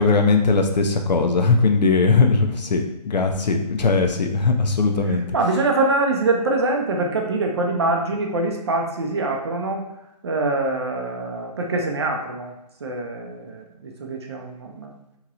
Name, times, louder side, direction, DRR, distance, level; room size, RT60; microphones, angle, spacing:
voice 1, 0.0-5.3, left 4 dB, 85° left, 4 dB, 0.6 m, -19 dB
voice 2, 5.3-9.8 10.2-12.5 12.8-14.9, right 2 dB, 40° right, 2 dB, 0.5 m, -24 dB
3.0 x 2.9 x 2.4 m, 0.88 s
hypercardioid pair, 160°, 21 cm